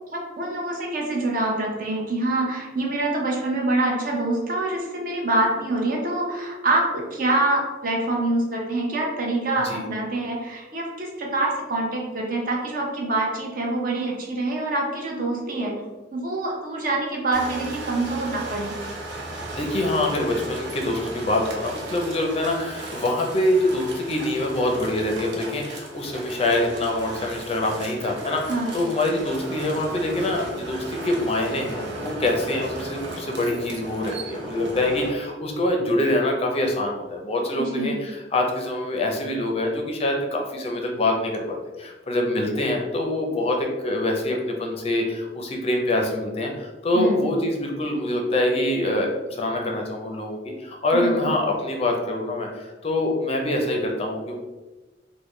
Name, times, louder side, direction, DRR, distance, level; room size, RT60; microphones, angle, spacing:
voice 1, 0.1-15.7 16.1-18.7 28.5-28.7 37.6-38.0 46.9-47.3 50.9-51.3, right 2 dB, 50° right, -1 dB, 0.7 m, -25 dB
sound 1, 17.3-35.1, right 2 dB, 85° right, 0.7 m, -36 dB
voice 2, 19.6-54.3, left 1 dB, 35° left, 1 dB, 0.5 m, -25 dB
3.5 x 2.1 x 3.1 m, 1.2 s
head